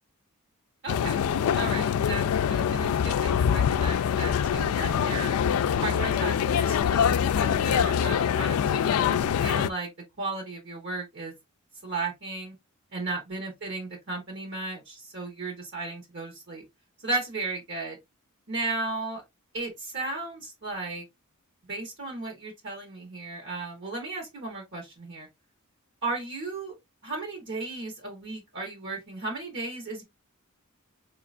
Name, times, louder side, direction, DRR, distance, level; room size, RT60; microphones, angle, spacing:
voice 1, 0.8-1.3 1.6-2.2 2.5-5.4 5.8-9.9 10.2-11.3 11.8-12.5 12.9-16.6 17.0-18.0 18.5-19.2 19.5-21.0 21.7-25.3 26.0-26.7 27.0-30.0, right 3 dB, 60° right, 1.4 m, -35 dB
sound 1, 0.9-9.7, left 8 dB, 75° left, 0.3 m, -24 dB
4.3 x 2.8 x 2.5 m
head